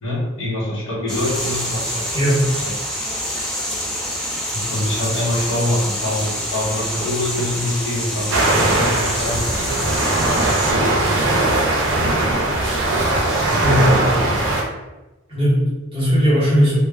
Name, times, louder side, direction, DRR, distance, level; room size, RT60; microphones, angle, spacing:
voice 1, 0.0-2.3 2.6-2.7 4.5-10.8, left 1 dB, 80° left, -4 dB, 0.9 m, -25 dB
sound 1, 1.1-10.7, equal, 5° left, 0.3 m, -26 dB
voice 2, 2.1-2.5 13.6-13.9 15.3-16.8, equal, 25° right, -9 dB, 1.0 m, -17 dB
sound 2, 8.3-14.6, right 2 dB, 70° right, 0.5 m, -19 dB
2.0 x 2.0 x 3.4 m, 1.1 s
head